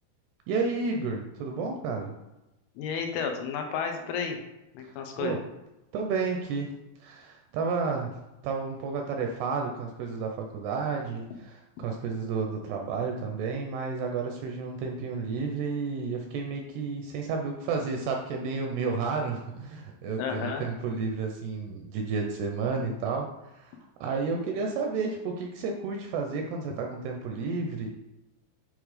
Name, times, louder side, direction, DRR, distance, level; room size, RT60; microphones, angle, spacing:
voice 1, 0.5-2.1 4.8-5.4 5.9-6.7 7.0-8.2 8.4-27.9, right 4 dB, 80° right, 2 dB, 2.4 m, -31 dB
voice 2, 2.8-4.4 4.7-5.4 20.2-20.7, left 6 dB, 90° left, 4 dB, 3.4 m, -32 dB
9.3 x 3.2 x 5.0 m, 0.96 s
omnidirectional pair, 5.3 m